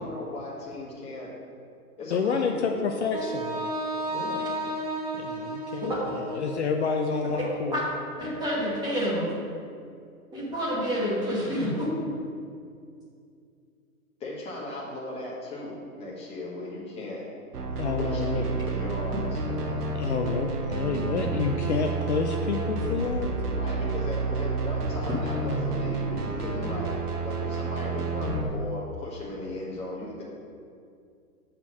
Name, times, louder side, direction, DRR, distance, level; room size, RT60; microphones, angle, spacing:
voice 1, 0.0-1.3 2.0-2.9 4.1-4.4 14.2-17.3 18.0-19.9 23.5-30.2, left 1 dB, 15° left, -6 dB, 1.4 m, -37 dB
voice 2, 2.1-3.7 5.1-7.8 17.8-18.4 20.0-23.3, left 5 dB, 50° left, 3 dB, 0.5 m, -29 dB
Wind instrument woodwind instrument, 3.1-7.2, right 1 dB, 30° right, 0.3 m, -33 dB
voice 3, 8.2-9.3 10.3-11.9, equal, 10° right, -6 dB, 1.2 m, -28 dB
sound 1, 17.5-28.4, right 3 dB, 80° right, 1.1 m, -30 dB
6.8 x 4.4 x 6.0 m, 2.4 s
hypercardioid pair, 140°, 46 cm